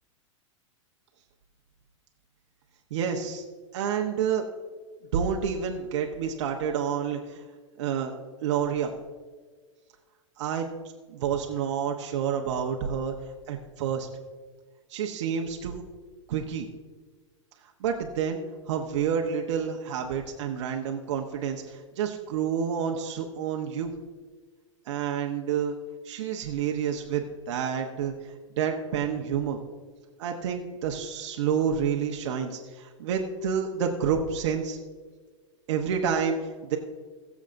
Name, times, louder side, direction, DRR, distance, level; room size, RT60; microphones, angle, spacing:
voice 1, 2.9-3.4 3.7-4.4 5.1-7.4 7.8-8.1 8.4-8.9 10.4-10.7 11.1-13.1 13.5-14.1 14.9-15.8 16.3-16.7 17.8-18.4 18.7-23.9 24.9-25.8 26.0-29.6 30.2-34.8 35.7-36.8, right 7 dB, 65° right, 2 dB, 1.1 m, -29 dB
20.0 x 7.3 x 2.6 m, 1.5 s
hypercardioid pair, 125°, 16 cm